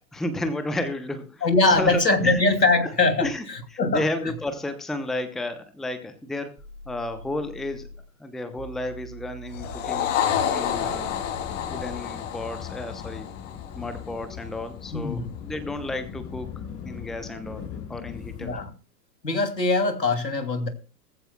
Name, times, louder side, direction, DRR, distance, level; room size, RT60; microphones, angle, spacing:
voice 1, 0.1-2.4 2.8-2.9 3.2-3.4 3.7-6.5 6.9-7.9 8.2-10.1 10.5-11.1 11.6-13.3 13.7-16.5 16.8-17.6 17.9-18.5, left 1 dB, ahead, 10 dB, 0.8 m, -32 dB
voice 2, 1.4-4.0 14.9-15.3 18.4-18.7 19.2-20.7, left 3 dB, 80° left, 6 dB, 2.9 m, -22 dB
sound 1, 6.6-8.0 8.6-12.0, right 1 dB, 25° right, 5.4 m, -44 dB
sound 2, 9.5-14.1, left 9 dB, 50° left, 2.9 m, -29 dB
sound 3, 10.7-18.7, left 8 dB, 25° left, 4.4 m, -39 dB
19.0 x 15.0 x 2.3 m, 0.36 s
figure-of-eight pair, 105°, 50 cm